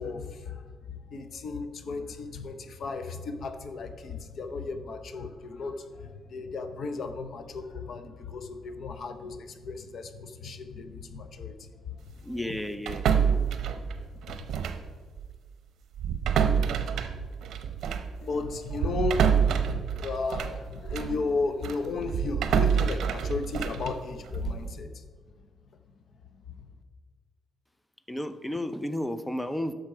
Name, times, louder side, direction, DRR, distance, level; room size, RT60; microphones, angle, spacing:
voice 1, 0.0-12.8 13.2-14.4 18.2-25.1 26.5-26.7, left 4 dB, 55° left, 9 dB, 0.7 m, -35 dB
voice 2, 12.2-13.0 28.1-29.7, left 1 dB, 5° left, 13 dB, 0.5 m, -32 dB
sound 1, 12.9-14.9 15.2-15.4 15.9-21.2 21.6-24.7, right 7 dB, 75° right, 0.7 m, -27 dB
10.5 x 6.6 x 4.9 m, 1.5 s
cardioid pair, 115°, 0 cm